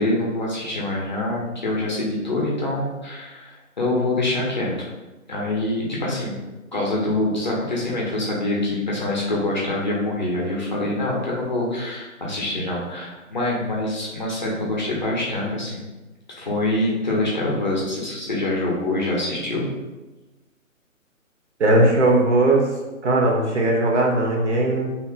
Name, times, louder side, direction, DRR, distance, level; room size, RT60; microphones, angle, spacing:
voice 1, 0.0-4.7 5.3-6.4 6.7-15.9 16.4-19.7, left 2 dB, 35° left, -4 dB, 0.6 m, -25 dB
voice 2, 21.6-22.7 23.0-24.9, right 2 dB, 55° right, -1 dB, 0.9 m, -18 dB
2.8 x 2.1 x 3.8 m, 1.1 s
hypercardioid pair, 160°, 41 cm